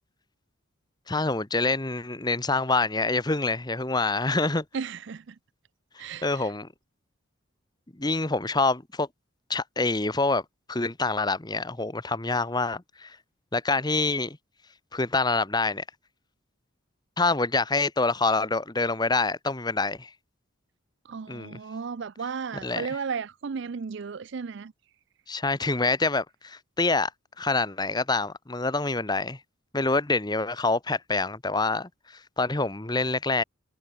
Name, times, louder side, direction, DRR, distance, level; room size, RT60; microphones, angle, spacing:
voice 1, 1.1-4.6 6.2-6.7 8.0-9.1 9.5-10.4 10.7-13.2 13.5-14.4 14.9-15.8 17.2-20.1 21.3-21.6 22.6-22.9 25.3-27.1 27.4-29.4 29.7-33.4, left 3 dB, 20° left, 1.1 m, -26 dB
voice 2, 4.7-5.4 6.0-6.5 21.0-24.7, right 5 dB, 55° right, 0.4 m, -34 dB
head